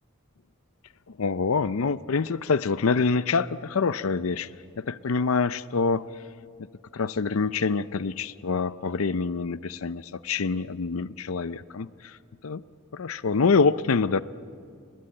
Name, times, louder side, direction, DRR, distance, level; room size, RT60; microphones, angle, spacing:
voice 1, 1.1-4.5 4.8-6.1 6.9-12.2 12.4-12.6 12.9-14.2, left 4 dB, 80° left, 16 dB, 0.6 m, -26 dB
29.5 x 21.0 x 8.9 m, 2.2 s
head